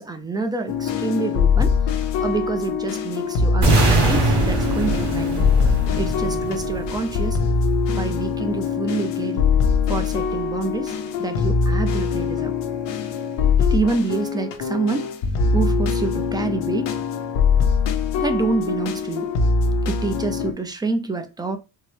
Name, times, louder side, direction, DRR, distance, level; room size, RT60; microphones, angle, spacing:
voice 1, 0.0-1.7 2.2-5.4 6.0-7.4 7.9-9.4 9.9-12.5 13.6-15.1 15.5-16.9 18.2-19.3 19.9-21.6, right 3 dB, 10° right, 0.3 m, -27 dB
sound 1, 0.7-20.5, left 5 dB, 85° left, 0.8 m, -22 dB
sound 2, 3.6-7.6, right 2 dB, 70° right, 1.6 m, -22 dB
4.5 x 2.0 x 3.2 m
cardioid pair, 145°, 42 cm